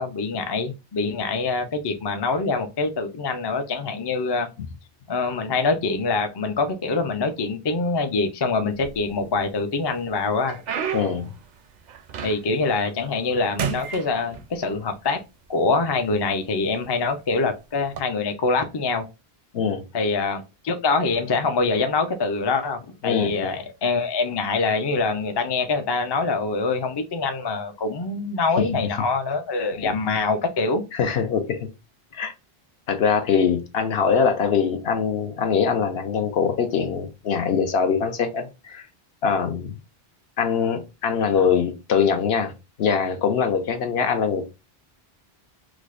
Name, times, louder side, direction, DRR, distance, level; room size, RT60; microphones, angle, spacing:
voice 1, 0.0-4.5 5.1-10.6 12.2-15.2 15.5-19.1 19.9-30.8, left 3 dB, 40° left, 0.4 m, -24 dB
sound 1, 8.7-9.5 9.9-12.7 13.0-13.3 13.6-14.8 15.6-15.7 16.4-16.6 17.8-18.0, right 8 dB, 55° right, 0.5 m, -32 dB
voice 2, 10.9-11.3 19.5-19.8 23.0-23.5 28.6-28.7 29.8-29.9 30.9-31.7 32.1-32.3 32.9-38.9 39.2-39.8 40.4-42.5 42.8-44.4, left 6 dB, 75° left, 0.9 m, -23 dB
4.7 x 2.1 x 2.4 m
omnidirectional pair, 1.0 m